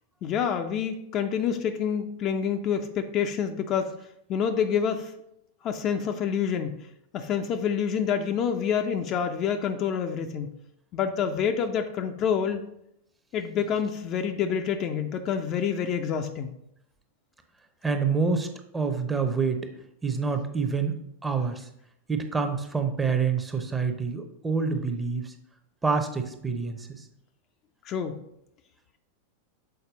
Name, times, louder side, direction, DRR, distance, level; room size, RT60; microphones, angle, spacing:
voice 1, 0.2-3.9 4.3-5.1 5.6-6.8 7.1-10.5 10.9-12.6 13.3-16.5 27.9-28.2, left 7 dB, 35° left, 6 dB, 0.5 m, -27 dB
voice 2, 17.8-18.5 18.7-19.7 20.0-20.9 21.2-21.7 22.1-25.3 25.8-26.9, right 5 dB, 10° right, 6 dB, 0.7 m, -27 dB
6.7 x 4.2 x 3.9 m, 0.77 s
figure-of-eight pair, 90°, 0 cm